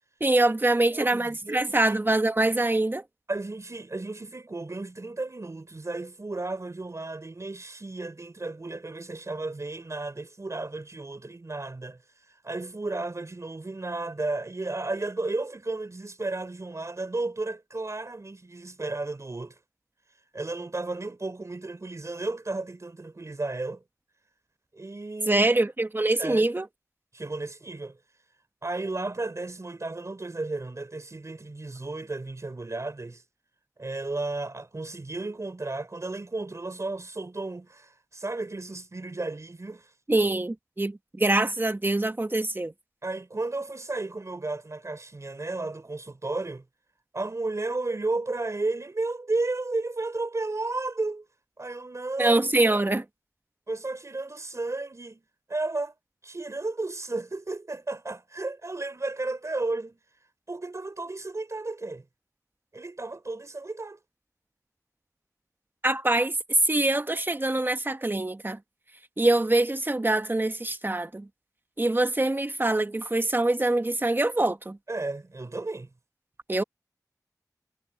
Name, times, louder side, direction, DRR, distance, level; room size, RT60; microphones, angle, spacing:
voice 1, 0.2-3.0 25.3-26.7 40.1-42.7 52.2-53.0 65.8-68.6 69.2-71.3 71.8-74.8 76.5-76.6, right 2 dB, 30° right, 1.3 m, -24 dB
voice 2, 0.9-2.0 3.3-12.0 12.4-19.6 20.3-23.8 24.7-25.4 26.2-26.5 27.1-28.0 28.6-33.2 33.8-39.9 43.0-46.6 47.1-51.3 51.6-52.4 53.7-55.2 55.5-55.9 56.2-60.0 60.5-62.0 62.7-64.0 74.9-75.9, right 2 dB, 50° right, 3.9 m, -33 dB
wide cardioid pair, 80°, 7 cm